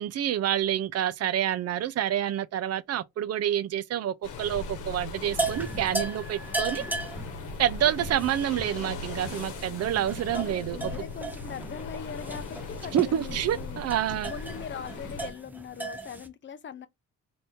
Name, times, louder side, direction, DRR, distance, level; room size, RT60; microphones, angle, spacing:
voice 1, 0.0-6.9 7.6-10.8 12.9-14.3, right 11 dB, 55° right, 0.5 m, -28 dB
sound 1, 4.2-15.3, left 3 dB, 90° left, 0.9 m, -39 dB
sound 2, 5.3-16.3, right 2 dB, 5° right, 0.7 m, -36 dB
voice 2, 10.3-13.8 14.3-16.9, left 7 dB, 40° left, 0.5 m, -41 dB
3.4 x 2.7 x 2.7 m
cardioid pair, 90°, 30 cm